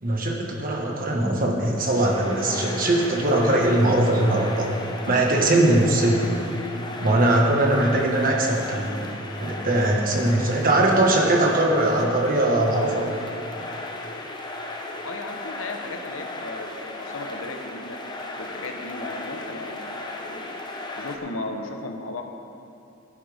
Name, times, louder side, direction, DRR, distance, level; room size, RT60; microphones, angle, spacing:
voice 1, 0.0-4.7 5.1-6.2 7.0-9.0 9.4-13.1, right 1 dB, 45° right, -1 dB, 1.6 m, -21 dB
sound 1, 1.7-21.2, left 2 dB, 20° left, 0.8 m, -36 dB
voice 2, 15.0-18.0 18.4-20.6 21.0-22.2, left 2 dB, 75° left, 3 dB, 1.0 m, -35 dB
16.0 x 10.0 x 3.6 m, 2.8 s
head